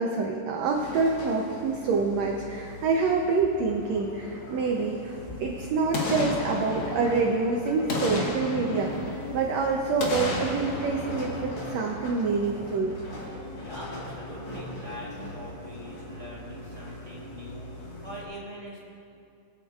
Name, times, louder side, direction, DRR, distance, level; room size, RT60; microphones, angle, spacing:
voice 1, 0.0-12.9 16.0-16.1, right 4 dB, 80° right, 0 dB, 1.5 m, -27 dB
sound 1, 0.7-18.2, left 1 dB, 50° left, 2.1 m, -41 dB
voice 2, 4.4-5.6 13.5-18.9, equal, 20° right, -7 dB, 1.3 m, -43 dB
Boom, 5.9-7.4 7.9-9.5 10.0-12.2 12.6-12.7, left 2 dB, 75° left, 1.1 m, -32 dB
22.0 x 8.9 x 2.4 m, 2.6 s
omnidirectional pair, 4.1 m